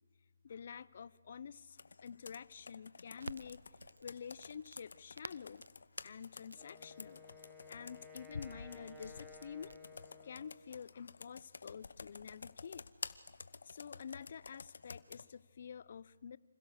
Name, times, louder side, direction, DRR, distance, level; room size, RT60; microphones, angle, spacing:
voice 1, 0.4-3.6 4.0-5.7 6.0-7.2 7.7-9.8 10.2-12.9 13.6-16.4, left 7 dB, 45° left, 19 dB, 0.7 m, -49 dB
Computer keyboard, 1.8-15.3, left 4 dB, 65° left, 1.0 m, -51 dB
Crackle, 3.2-11.1, right 3 dB, 85° right, 0.7 m, -55 dB
Wind instrument woodwind instrument, 6.5-10.8, left 3 dB, ahead, 2.1 m, -56 dB
27.5 x 26.0 x 6.7 m, 1.5 s
figure-of-eight pair, 160°, 0 cm